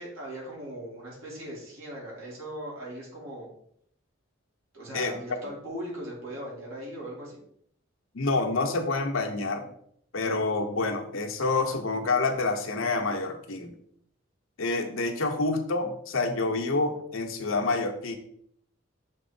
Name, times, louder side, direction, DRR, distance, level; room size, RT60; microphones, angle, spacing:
voice 1, 0.0-3.5 4.7-7.4, right 1 dB, 85° right, -3 dB, 2.4 m, -39 dB
voice 2, 8.1-9.6 10.1-13.7 14.6-18.2, left 3 dB, 80° left, 4 dB, 0.9 m, -28 dB
6.2 x 3.7 x 4.2 m, 0.68 s
head